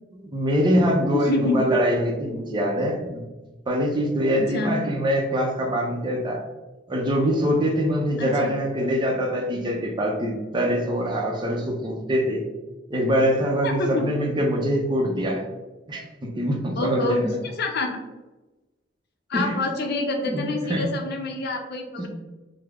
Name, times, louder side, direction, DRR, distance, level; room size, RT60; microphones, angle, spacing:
voice 1, 0.1-3.2 3.7-6.4 6.9-12.4 12.9-15.5 15.9-17.2 19.3-19.6 20.2-20.9 22.0-22.1, equal, 25° right, 0 dB, 0.6 m, -24 dB
voice 2, 1.1-1.6 4.3-4.8 8.2-8.5 13.6-14.1 16.8-17.3 17.6-18.0 19.3-22.1, left 2 dB, 55° left, 3 dB, 0.6 m, -27 dB
3.4 x 2.0 x 3.4 m, 1.1 s
head